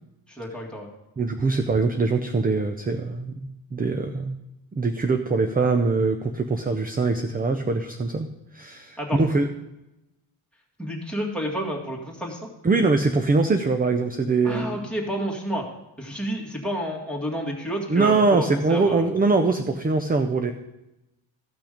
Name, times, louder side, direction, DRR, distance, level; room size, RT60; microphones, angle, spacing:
voice 1, 0.3-0.9 9.0-9.2 10.8-12.4 14.4-15.7 16.0-19.1, equal, ahead, -2 dB, 2.0 m, -30 dB
voice 2, 1.2-4.4 4.7-8.3 8.5-9.5 12.6-14.9 17.9-20.5, right 3 dB, 20° right, 7 dB, 0.4 m, -23 dB
14.5 x 5.9 x 5.1 m, 0.94 s
wide cardioid pair, 130°, 50 cm